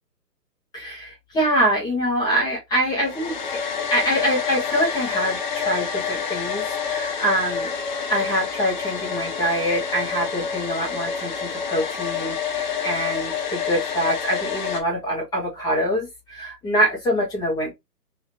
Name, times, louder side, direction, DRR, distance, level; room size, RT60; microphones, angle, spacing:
voice 1, 0.7-3.6 3.9-7.7 8.1-17.7, equal, 10° left, 1.4 m, -24 dB
Domestic sounds home sounds, 3.0-14.8, left 6 dB, 30° left, 0.6 m, -28 dB
3.6 x 3.1 x 3.0 m
figure-of-eight pair, 140°, 50 cm